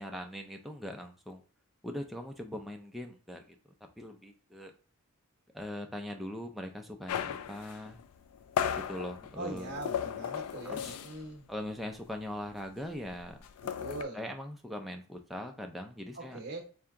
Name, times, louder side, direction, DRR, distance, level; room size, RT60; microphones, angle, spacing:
voice 1, 0.0-1.4 1.8-3.6 4.0-4.7 5.5-8.0 8.7-9.7 10.6-11.0 11.5-13.4 14.1-16.4, left 1 dB, ahead, 3 dB, 0.4 m, -41 dB
sound 1, 7.1-11.3 11.6-11.8 12.1-14.0, left 8 dB, 85° left, 0.3 m, -36 dB
voice 2, 9.3-11.4 13.8-14.2 16.1-16.6, right 2 dB, 45° right, 2 dB, 0.8 m, -41 dB
3.4 x 2.8 x 3.5 m, 0.39 s
head